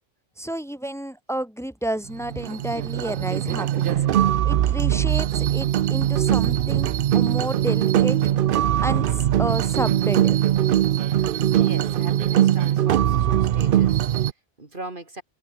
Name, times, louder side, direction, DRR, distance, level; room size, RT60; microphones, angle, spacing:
voice 1, 0.4-4.0 4.4-8.2 8.8-10.4, right 1 dB, ahead, 2.9 m, -31 dB
sound 1, 2.1-14.3, right 11 dB, 60° right, 0.6 m, -21 dB
voice 2, 11.6-15.2, right 2 dB, 45° right, 2.7 m, -39 dB
omnidirectional pair, 1.2 m